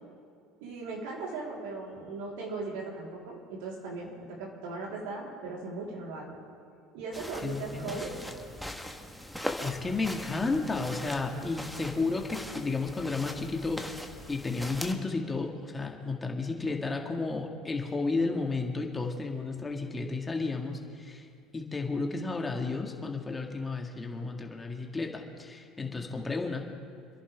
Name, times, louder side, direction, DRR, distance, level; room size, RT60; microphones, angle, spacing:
voice 1, 0.6-6.4 6.9-8.2 11.3-11.4, right 3 dB, 75° right, -3 dB, 3.9 m, -38 dB
sound 1, 7.1-14.9, equal, ahead, 1.4 m, -41 dB
voice 2, 7.4-8.2 9.6-13.8 14.3-21.3 21.5-26.7, left 3 dB, 20° left, 1 dB, 2.0 m, -32 dB
28.0 x 11.0 x 3.6 m, 2.4 s
hypercardioid pair, 80°, 0 cm